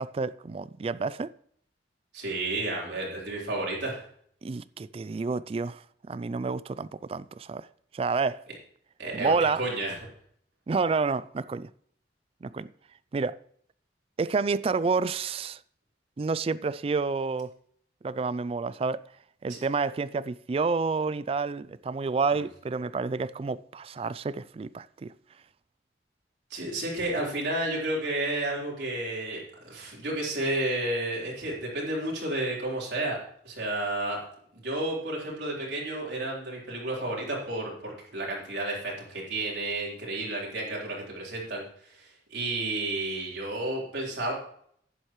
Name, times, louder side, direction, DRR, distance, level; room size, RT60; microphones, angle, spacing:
voice 1, 0.0-1.3 4.4-5.8 6.1-7.7 7.9-8.4 9.1-9.6 10.7-11.7 12.4-12.7 13.1-13.4 14.2-15.6 16.2-17.5 18.0-19.0 19.4-25.1, right 4 dB, 30° right, 0.3 m, -29 dB
voice 2, 2.1-4.0 9.0-10.0 19.5-19.6 26.5-33.2 33.4-34.2 34.5-44.3, right 2 dB, 70° right, 3.9 m, -31 dB
11.0 x 9.7 x 3.1 m
head